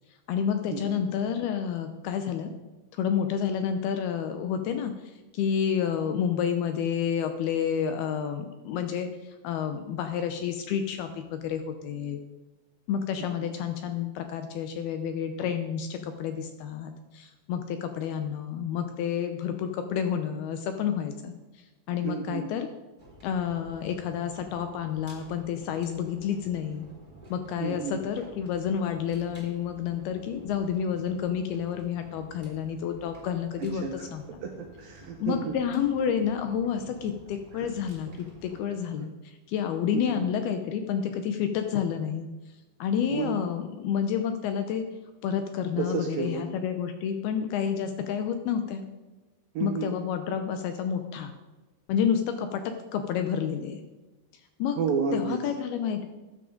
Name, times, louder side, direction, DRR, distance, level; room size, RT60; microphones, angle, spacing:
voice 1, 0.3-2.5 2.9-4.9 5.3-9.1 9.4-12.2 12.9-21.3 21.9-22.7 23.2-26.9 27.3-33.8 34.1-34.2 35.2-39.1 39.5-42.3 42.8-44.9 45.2-48.8 49.6-51.3 51.9-53.8 54.6-54.8 55.1-56.1, left 8 dB, 80° left, 7 dB, 2.4 m, -29 dB
voice 2, 22.0-22.5 27.6-28.0 33.6-34.1 34.4-35.6 37.5-37.7 38.7-39.1 39.9-40.2 43.1-43.4 45.8-46.4 49.5-49.9 54.8-55.5 55.8-55.9, right 5 dB, 75° right, 3 dB, 2.1 m, -32 dB
sound 1, 23.0-38.6, right 1 dB, 15° right, 2.1 m, -51 dB
14.0 x 10.0 x 3.8 m, 1.1 s
omnidirectional pair, 5.0 m